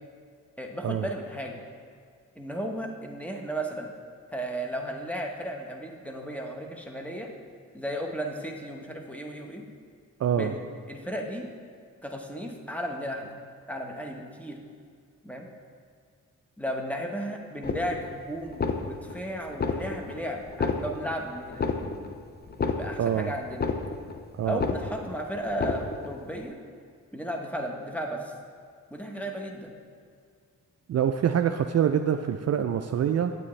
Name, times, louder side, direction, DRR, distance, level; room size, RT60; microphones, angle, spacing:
voice 1, 0.6-1.6 2.3-3.9 4.3-7.3 7.7-9.7 10.3-10.6 10.9-11.5 12.0-13.3 13.7-14.6 15.2-15.5 16.6-22.1 22.6-23.7 24.4-26.6 27.1-28.3 28.9-29.7, equal, 5° left, 1 dB, 1.1 m, -34 dB
voice 2, 10.2-10.5 23.0-23.3 24.4-24.6 30.9-33.3, right 9 dB, 50° right, 7 dB, 0.4 m, -25 dB
sound 1, 17.6-18.2 18.5-19.2 19.5-20.2 20.5-21.2 21.5-22.2 22.5-23.2 23.5-24.2 24.5-25.2 25.5-26.2, left 4 dB, 30° left, 0.7 m, -30 dB
8.5 x 8.4 x 3.2 m, 2.1 s
cardioid pair, 60°, 34 cm